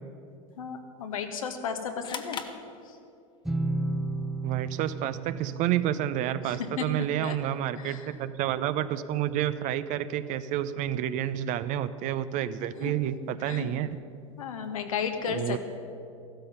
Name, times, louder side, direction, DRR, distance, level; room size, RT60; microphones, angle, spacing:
voice 1, 0.6-2.4 6.4-7.4 7.8-8.1 12.8-12.9 13.4-13.7 14.4-15.6, left 6 dB, 80° left, 5 dB, 1.6 m, -34 dB
sound 1, 2.0-3.4, left 6 dB, 25° left, 1.1 m, -40 dB
sound 2, 3.5-9.1, right 2 dB, ahead, 1.0 m, -35 dB
voice 2, 4.4-14.0 15.3-15.6, right 11 dB, 45° right, 13 dB, 0.7 m, -29 dB
14.5 x 13.0 x 5.6 m, 2.5 s
hypercardioid pair, 95°, 17 cm